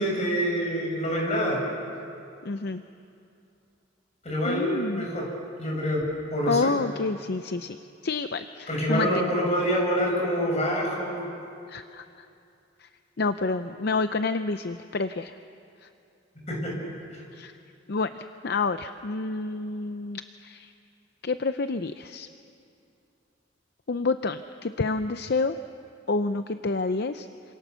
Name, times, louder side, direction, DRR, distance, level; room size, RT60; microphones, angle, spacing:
voice 1, 0.0-1.6 4.2-5.3 5.6-6.0 6.3-6.7 8.7-11.2 16.5-16.8, equal, 35° left, -1 dB, 6.8 m, -26 dB
voice 2, 2.4-2.8 4.4-5.1 6.5-9.3 11.7-12.2 12.8-12.9 13.2-15.3 15.8-15.9 17.3-17.5 17.9-20.7 21.2-22.3 23.9-25.6 26.1-27.3, left 3 dB, 60° left, 10 dB, 0.6 m, -29 dB
28.5 x 27.0 x 6.9 m, 2.6 s
head